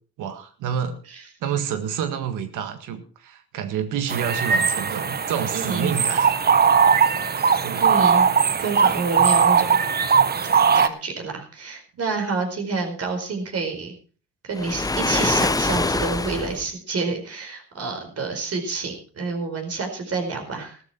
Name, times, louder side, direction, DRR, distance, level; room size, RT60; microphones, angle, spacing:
voice 1, 0.2-1.0 1.4-6.3 7.6-7.9, right 8 dB, 90° right, 8 dB, 1.7 m, -28 dB
sound 1, 4.1-10.9, right 6 dB, 30° right, 0.9 m, -19 dB
voice 2, 5.5-5.9 7.8-8.3 8.6-9.8 10.7-13.9 14.4-20.8, right 4 dB, 55° right, 4 dB, 4.8 m, -28 dB
Waves surf, 14.5-16.6, left 3 dB, 10° left, 0.7 m, -24 dB
14.5 x 13.5 x 4.4 m, 0.39 s
cardioid pair, 90°, 30 cm